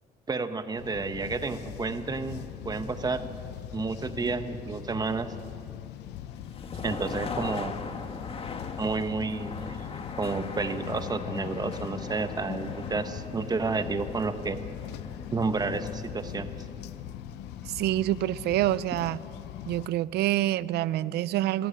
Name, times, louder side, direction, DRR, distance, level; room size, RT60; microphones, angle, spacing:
voice 1, 0.3-3.4 3.7-5.3 6.8-7.7 8.8-9.9 10.2-14.6 15.3-16.5, right 4 dB, 25° right, 9 dB, 1.2 m, -31 dB
sound 1, 0.8-19.9, left 12 dB, 90° left, 0.7 m, -41 dB
sound 2, 6.3-18.1, left 4 dB, 35° left, 1.4 m, -41 dB
voice 2, 17.7-19.2 19.7-21.7, right 14 dB, 75° right, 18 dB, 0.6 m, -27 dB
24.0 x 13.5 x 8.7 m, 2.6 s
cardioid pair, 110°, 17 cm